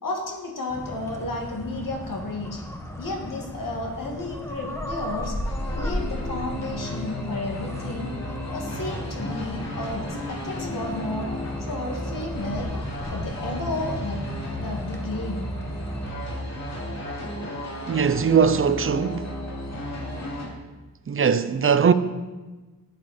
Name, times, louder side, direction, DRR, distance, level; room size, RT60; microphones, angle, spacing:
voice 1, 0.0-2.6 3.0-8.1 8.5-11.3 11.6-12.7 13.1-14.2 14.6-15.5, left 2 dB, 65° left, 2.2 m, -32 dB
sound 1, 0.7-16.1, left 1 dB, 10° left, 1.2 m, -35 dB
sound 2, 5.2-20.5, left 1 dB, 50° left, 2.6 m, -34 dB
voice 2, 17.9-19.4 21.1-21.9, right 6 dB, 35° right, 0.5 m, -20 dB
11.5 x 8.2 x 4.3 m
wide cardioid pair, 115°, 35 cm